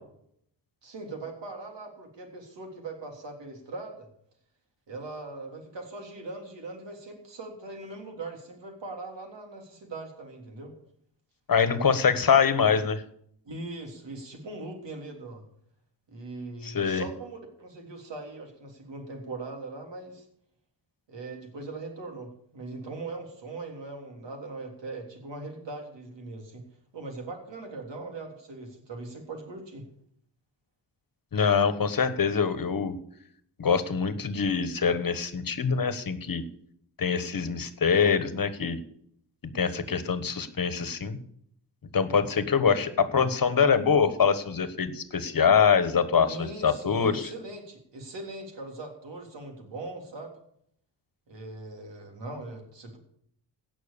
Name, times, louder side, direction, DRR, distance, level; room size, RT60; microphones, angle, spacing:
voice 1, 0.8-4.1 4.9-10.7 13.4-15.4 16.1-20.2 21.1-26.6 26.9-29.8 46.1-50.3 51.3-53.0, right 2 dB, 80° right, 2 dB, 3.5 m, -40 dB
voice 2, 11.5-13.0 16.6-17.0 31.3-32.9 33.6-36.4 37.0-38.8 39.5-41.2 41.9-47.3, left 6 dB, 50° left, 12 dB, 1.3 m, -24 dB
17.0 x 6.2 x 6.9 m, 0.68 s
wide cardioid pair, 95°, 43 cm